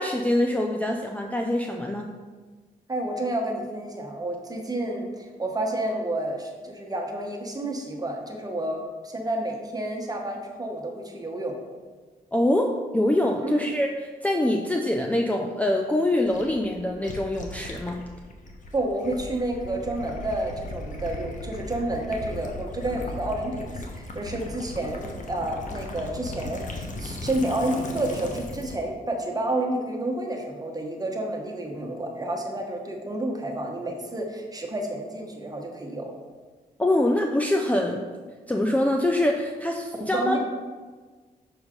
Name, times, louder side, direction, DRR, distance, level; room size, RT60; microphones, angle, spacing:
voice 1, 0.0-2.1 12.3-13.9 14.2-18.0 36.8-38.0 38.5-40.4, left 1 dB, 10° left, 1 dB, 0.5 m, -24 dB
voice 2, 2.9-11.5 13.4-13.6 18.7-23.7 23.9-36.1 40.0-40.4, right 1 dB, 25° right, 1 dB, 1.2 m, -30 dB
Gurgling / Liquid, 16.2-28.8, left 2 dB, 50° left, 1.0 m, -37 dB
6.2 x 4.8 x 3.8 m, 1.4 s
cardioid pair, 70°, 16 cm